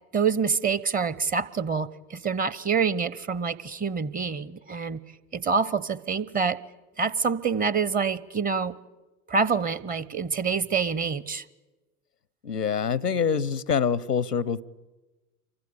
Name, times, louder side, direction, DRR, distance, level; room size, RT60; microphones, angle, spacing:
voice 1, 0.1-5.0 5.3-6.6 7.0-8.7 9.3-11.4, right 5 dB, 20° right, 0.8 m, -26 dB
voice 2, 12.4-14.6, left 6 dB, 90° left, 0.8 m, -25 dB
27.0 x 24.0 x 8.4 m
figure-of-eight pair, 80°, 46 cm